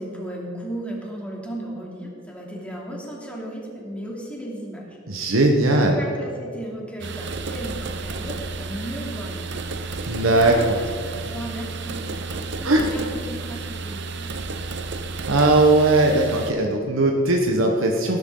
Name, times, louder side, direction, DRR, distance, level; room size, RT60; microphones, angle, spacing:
voice 1, 0.0-5.4 5.6-9.6 9.9-14.3, right 1 dB, 5° left, -3 dB, 2.9 m, -35 dB
voice 2, 5.1-6.0 10.1-10.7 12.6-12.8 15.3-18.2, right 2 dB, 85° right, 1 dB, 1.2 m, -19 dB
sound 1, 7.0-16.5, right 3 dB, 60° right, 0.9 m, -32 dB
18.5 x 11.0 x 3.9 m, 2.5 s
head